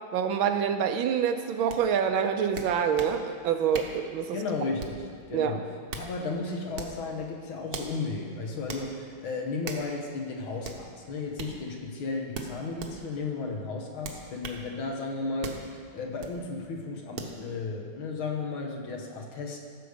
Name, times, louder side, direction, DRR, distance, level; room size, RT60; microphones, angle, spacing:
voice 1, 0.1-4.4 5.3-5.6, right 7 dB, 75° right, 7 dB, 1.3 m, -26 dB
sound 1, 1.7-1.8 2.6-3.2 3.7-4.0 4.8-5.1 5.7-6.1 6.7-7.0 7.7-7.9 8.7-8.9 9.6-9.9 10.6-10.8 11.4-11.5 12.3-12.9 14.0-14.6 15.4-15.6 16.2-16.4 17.2-17.4, right 4 dB, 55° right, 1.2 m, -38 dB
voice 2, 4.3-5.6 5.9-19.6, left 3 dB, 75° left, 1 dB, 2.1 m, -34 dB
14.5 x 6.8 x 5.1 m, 2.1 s
omnidirectional pair, 2.3 m